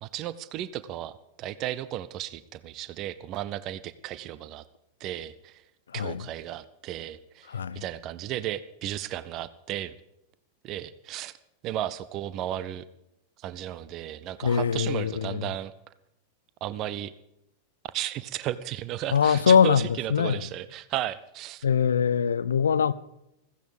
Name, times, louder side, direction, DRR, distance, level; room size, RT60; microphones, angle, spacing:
voice 1, 0.0-4.6 5.0-5.6 5.9-7.5 7.7-9.9 10.6-11.3 11.6-12.8 13.4-15.7 16.6-17.1 17.9-21.7, right 12 dB, 35° right, 0.7 m, -34 dB
voice 2, 7.5-7.8 14.4-15.4 19.1-20.4 21.6-22.9, left 7 dB, 70° left, 0.6 m, -23 dB
15.5 x 15.5 x 5.1 m
figure-of-eight pair, 90°, 0 cm